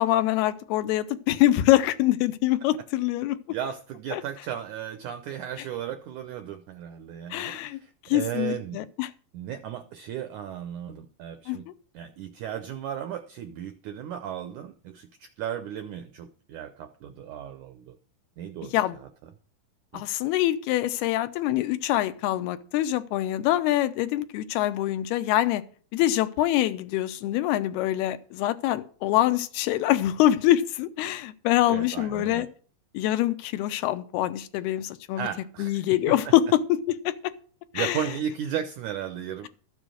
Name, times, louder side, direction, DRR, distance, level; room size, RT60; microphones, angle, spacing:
voice 1, 0.0-3.4 4.1-4.2 7.3-7.8 8.1-9.1 11.5-11.7 18.7-19.0 19.9-25.6 25.9-32.5 32.9-35.3 35.6-37.1 37.7-38.1, left 14 dB, 85° left, 2.8 m, -24 dB
voice 2, 3.5-8.9 9.3-11.7 11.9-18.0 18.4-19.1 19.9-20.1 31.7-32.5 35.2-36.3 37.7-39.5, right 9 dB, 80° right, 1.8 m, -35 dB
13.5 x 7.3 x 6.3 m
omnidirectional pair, 4.5 m